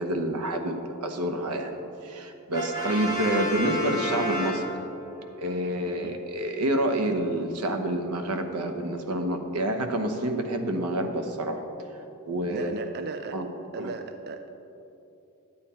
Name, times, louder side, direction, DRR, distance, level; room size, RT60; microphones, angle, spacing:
voice 1, 0.0-4.7 5.4-11.6 12.3-12.9 13.3-13.5 13.8-13.9, right 1 dB, 85° right, 6 dB, 1.0 m, -28 dB
Brass instrument, 2.5-5.2, equal, 20° right, 1.5 m, -30 dB
voice 2, 5.8-6.2 12.5-13.5 13.7-14.5, right 4 dB, 45° right, 7 dB, 0.4 m, -37 dB
11.5 x 8.9 x 4.3 m, 3.0 s
head